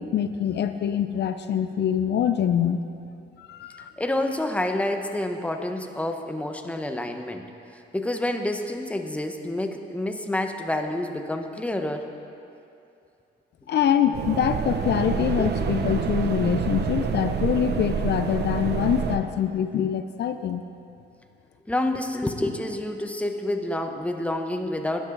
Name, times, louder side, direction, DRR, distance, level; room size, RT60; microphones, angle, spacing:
voice 1, 0.0-2.8 3.4-3.9 13.7-20.6, left 9 dB, 60° left, 8 dB, 0.6 m, -24 dB
voice 2, 3.8-7.4 7.9-12.1 15.4-15.7 21.7-25.1, left 1 dB, 5° left, 5 dB, 1.0 m, -28 dB
sound 1, 14.1-19.2, right 7 dB, 55° right, 0.9 m, -27 dB
16.5 x 10.5 x 3.9 m, 2.6 s
cardioid pair, 90°, 20 cm